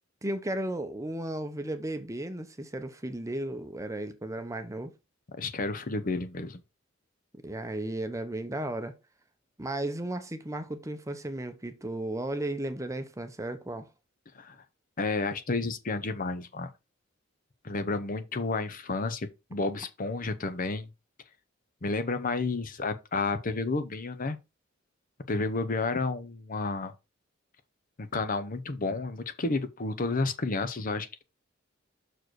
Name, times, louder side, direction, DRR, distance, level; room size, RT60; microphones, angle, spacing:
voice 1, 0.2-4.9 7.4-8.9 9.6-13.9, right 1 dB, 15° right, 0.8 m, -34 dB
voice 2, 5.4-6.6 14.3-14.6 15.0-16.7 17.6-20.9 21.8-24.4 25.3-26.9 28.0-31.2, left 3 dB, 45° left, 0.8 m, -31 dB
6.2 x 4.6 x 4.6 m
head